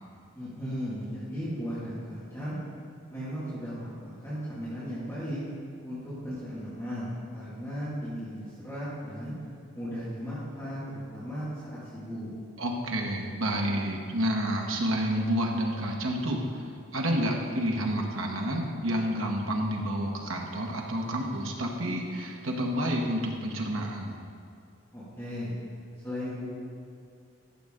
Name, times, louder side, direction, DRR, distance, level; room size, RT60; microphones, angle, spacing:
voice 1, 0.3-2.6 3.1-5.4 5.8-9.3 9.7-12.3 24.9-25.6 26.0-26.5, equal, 15° left, -11 dB, 2.0 m, -36 dB
voice 2, 12.6-16.6 16.9-24.2, equal, 70° right, 0 dB, 1.3 m, -29 dB
13.5 x 6.6 x 3.7 m, 2.5 s
head